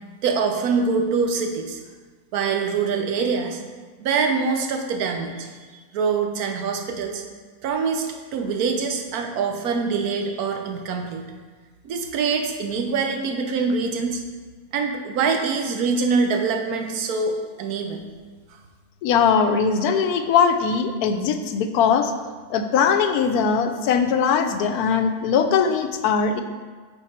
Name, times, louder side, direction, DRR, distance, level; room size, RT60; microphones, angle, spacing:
voice 1, 0.2-1.8 2.3-3.6 4.0-5.5 5.9-7.2 7.6-11.2 11.8-14.2 14.7-18.0, right 5 dB, 80° right, 3 dB, 1.2 m, -24 dB
voice 2, 19.0-22.1 22.5-26.4, left 6 dB, 85° left, 7 dB, 1.1 m, -20 dB
8.1 x 3.9 x 4.3 m, 1.5 s
omnidirectional pair, 1.6 m